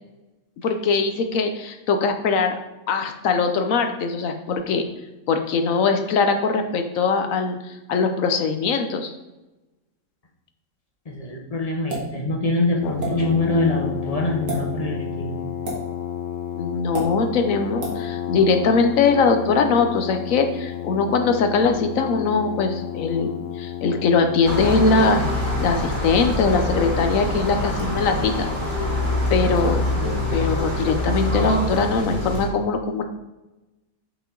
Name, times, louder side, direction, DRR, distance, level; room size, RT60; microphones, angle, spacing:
voice 1, 0.6-2.6 2.9-4.8 5.3-9.1 16.6-23.3 23.6-25.2 25.6-28.5 29.3-29.8 30.3-33.0, left 4 dB, 65° left, 6 dB, 0.9 m, -21 dB
voice 2, 11.1-15.4, left 2 dB, 30° left, 0 dB, 0.7 m, -24 dB
sound 1, 11.9-12.1 13.0-13.1 14.4-14.6 15.6-15.8 16.9-17.1 17.8-18.0, right 3 dB, 75° right, 2.4 m, -29 dB
Brass instrument, 12.8-25.1, left 10 dB, 80° left, 1.3 m, -31 dB
sound 2, 24.4-32.5, left 1 dB, 50° left, 2.8 m, -24 dB
6.2 x 5.6 x 3.8 m, 1.0 s
omnidirectional pair, 1.9 m